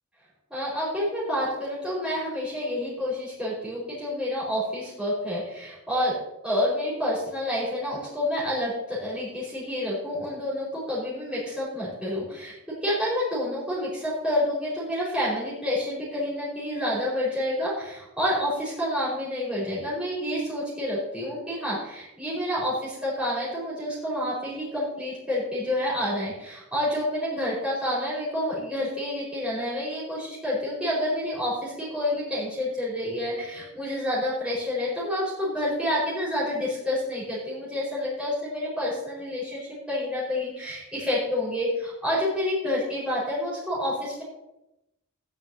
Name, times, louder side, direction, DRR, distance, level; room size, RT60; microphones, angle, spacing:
voice 1, 0.5-6.2 6.4-12.5 12.8-44.2, left 1 dB, 5° right, -8 dB, 4.8 m, -28 dB
17.5 x 10.5 x 2.8 m, 0.88 s
head